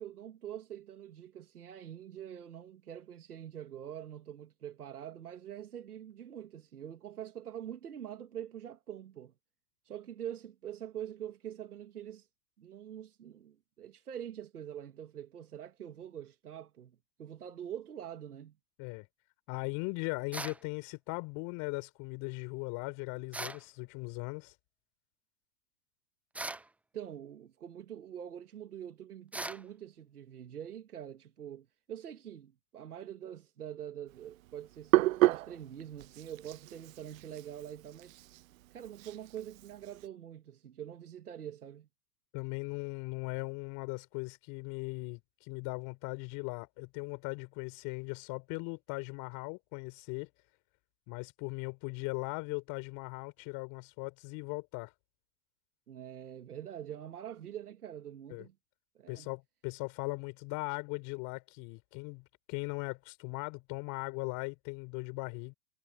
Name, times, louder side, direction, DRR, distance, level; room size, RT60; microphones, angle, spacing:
voice 1, 0.0-9.3 9.8-12.3 12.6-18.6 26.9-38.2 38.7-41.9 55.9-58.5 58.9-59.3, right 10 dB, 85° right, 2.4 m, -45 dB
voice 2, 19.5-24.5 42.3-50.3 51.1-54.9 58.3-58.5 59.1-65.5, left 30 dB, 45° left, 5.0 m, -39 dB
sound 1, 20.3-20.6 23.3-23.6 26.3-26.7 29.3-29.6, right 2 dB, 5° right, 0.5 m, -39 dB
Hands, 34.1-40.1, right 17 dB, 65° right, 0.5 m, -32 dB
hypercardioid pair, 105°, 44 cm